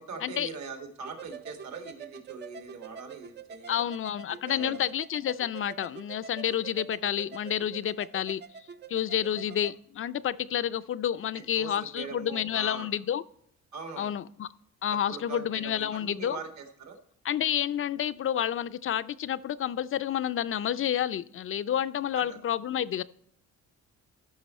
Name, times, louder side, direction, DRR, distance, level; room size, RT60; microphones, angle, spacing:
voice 1, 0.0-3.8 4.5-4.8 9.3-9.4 11.3-12.9 13.7-14.2 15.1-17.0 22.1-22.4, right 4 dB, 65° right, 5 dB, 1.8 m, -42 dB
sound 1, 1.0-9.8, right 7 dB, 35° right, 0.5 m, -46 dB
voice 2, 3.7-8.4 8.9-13.2 14.0-14.5 14.8-16.4 17.2-23.0, left 10 dB, 45° left, 15 dB, 0.5 m, -29 dB
13.5 x 5.4 x 4.2 m, 0.69 s
cardioid pair, 90°, 30 cm